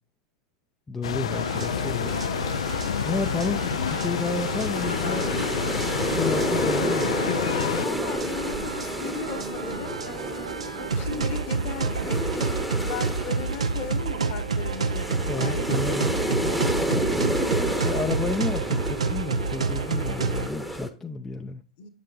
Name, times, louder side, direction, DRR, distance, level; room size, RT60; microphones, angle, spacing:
voice 1, 0.9-2.2 3.0-7.1 15.3-16.1 16.9-21.6, left 3 dB, 15° left, 0.5 m, -32 dB
sound 1, 1.0-7.9, left 8 dB, 70° left, 0.4 m, -28 dB
sound 2, 1.3-20.5, right 4 dB, 80° right, 0.6 m, -30 dB
sound 3, 1.6-20.9, equal, ahead, 0.9 m, -31 dB
voice 2, 2.9-3.3 7.6-16.8 21.8-21.9, left 6 dB, 45° left, 1.2 m, -37 dB
7.4 x 6.6 x 2.5 m
figure-of-eight pair, 90°, 3 cm